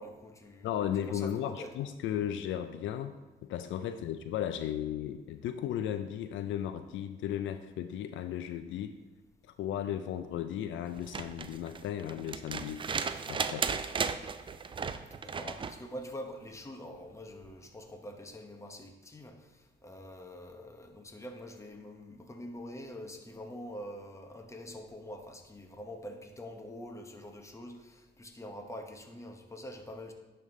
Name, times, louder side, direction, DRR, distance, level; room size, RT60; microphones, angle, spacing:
voice 1, 0.0-0.7 1.1-1.7 3.9-4.0 15.2-30.1, equal, 15° left, 4 dB, 1.0 m, -45 dB
voice 2, 0.6-3.2 3.4-9.0 9.4-12.9 13.3-13.7, left 10 dB, 75° left, 10 dB, 0.4 m, -35 dB
sound 1, 10.9-15.8 17.4-17.5, right 5 dB, 25° right, 0.3 m, -35 dB
10.5 x 3.6 x 3.7 m, 1.2 s
cardioid pair, 90°, 20 cm